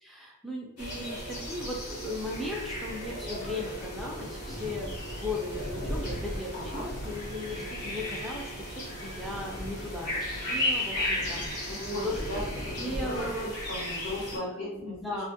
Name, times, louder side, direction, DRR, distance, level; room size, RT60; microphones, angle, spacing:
voice 1, 0.0-12.4 12.8-13.4 14.5-15.3, left 2 dB, ahead, -3 dB, 0.4 m, -37 dB
sound 1, 0.8-14.4, left 1 dB, 85° left, 1.1 m, -35 dB
sound 2, 1.0-12.7, right 7 dB, 85° right, 0.6 m, -49 dB
voice 2, 6.5-6.8 11.6-15.3, left 1 dB, 60° left, -7 dB, 1.0 m, -37 dB
2.2 x 2.1 x 2.7 m, 0.89 s
head